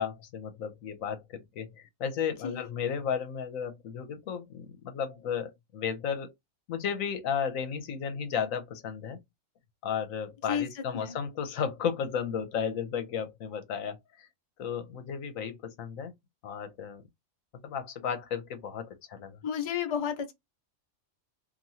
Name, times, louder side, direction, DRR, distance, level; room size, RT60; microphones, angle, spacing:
voice 1, 0.0-6.3 6.7-9.2 9.8-14.3 14.6-16.1 16.4-17.0 17.6-19.4, left 7 dB, 80° left, 1.1 m, -34 dB
voice 2, 10.5-11.2 19.4-20.3, left 8 dB, 40° left, 0.4 m, -32 dB
3.0 x 2.4 x 2.7 m
omnidirectional pair, 1.4 m